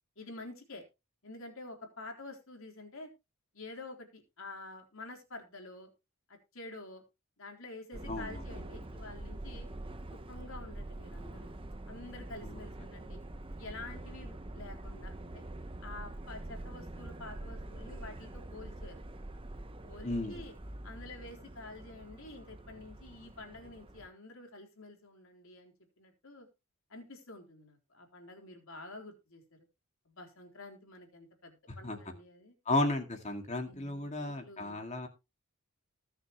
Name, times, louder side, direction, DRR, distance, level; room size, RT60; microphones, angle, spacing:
voice 1, 0.2-0.8 1.2-3.1 3.5-5.9 6.3-7.0 7.4-9.7 10.3-11.6 11.9-13.2 13.6-15.4 15.8-19.0 19.8-20.5 20.8-26.5 26.9-29.6 30.1-32.5 33.7-34.8, left 2 dB, 65° left, 3 dB, 3.8 m, -48 dB
Subway metro underground, 7.9-24.1, right 1 dB, 25° right, 0.9 m, -45 dB
voice 2, 8.1-8.4 20.0-20.4 31.8-32.0 32.7-35.1, left 2 dB, 30° left, 4 dB, 2.1 m, -33 dB
20.5 x 6.9 x 3.1 m, 0.27 s
head